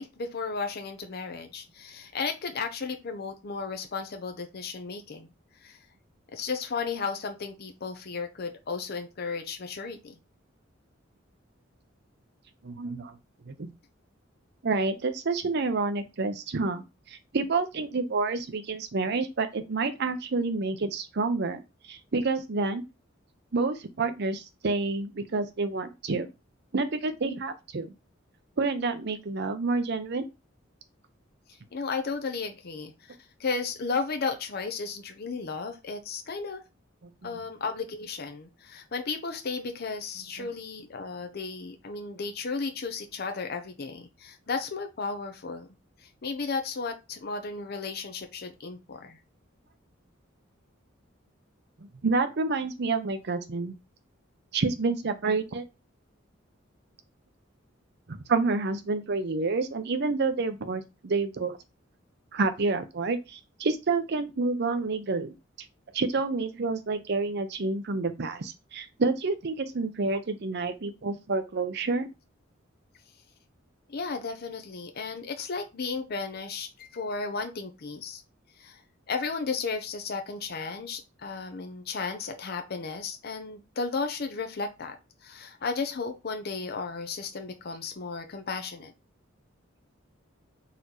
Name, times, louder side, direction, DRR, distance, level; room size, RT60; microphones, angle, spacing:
voice 1, 0.0-5.3 5.6-5.8 6.3-10.1 31.7-36.6 37.2-45.7 46.0-49.2 73.9-78.2 78.6-78.8 79.1-85.0 85.2-88.9, left 4 dB, 55° left, 0.7 m, -34 dB
voice 2, 12.6-13.2 13.5-13.7 14.6-16.8 17.1-22.8 23.5-26.3 26.7-27.9 28.6-30.2 37.2-37.4 40.4-40.5 52.0-53.7 54.5-55.6 58.1-61.6 62.3-65.3 65.9-72.1, right 3 dB, 60° right, 0.6 m, -29 dB
4.2 x 3.0 x 3.9 m
head